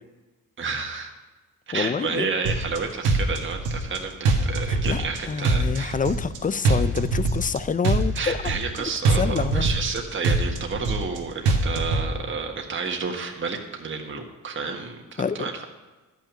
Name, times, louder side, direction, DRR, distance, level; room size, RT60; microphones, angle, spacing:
voice 1, 0.6-1.1 1.7-6.0 8.1-15.6, right 5 dB, 40° right, 2 dB, 1.5 m, -30 dB
voice 2, 1.7-2.3 4.9-8.4 9.1-9.7 15.2-15.4, left 6 dB, 25° left, 15 dB, 0.5 m, -27 dB
sound 1, 2.5-2.8 3.0-4.0 4.3-5.2 5.4-6.4 6.7-7.6 7.8-8.8 9.1-10.0 10.2-11.2 11.5-12.1, right 3 dB, 90° right, 1.8 m, -22 dB
12.0 x 5.9 x 8.7 m, 1.2 s
cardioid pair, 95°, 32 cm